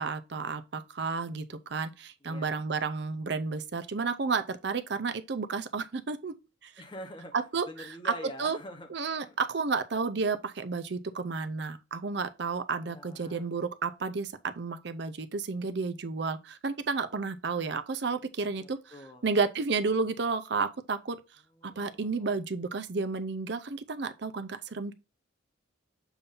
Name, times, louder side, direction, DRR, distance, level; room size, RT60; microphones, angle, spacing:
voice 1, 0.0-6.3 6.6-6.7 7.3-8.1 8.4-8.6 8.9-18.9 19.2-21.2 21.6-24.9, right 4 dB, 60° right, 0.6 m, -32 dB
voice 2, 2.2-2.6 6.8-7.3 7.7-8.9 9.2-9.4 12.8-13.5 18.6-19.3 21.5-22.3, left 1 dB, 25° left, 0.9 m, -45 dB
7.1 x 2.7 x 5.3 m
head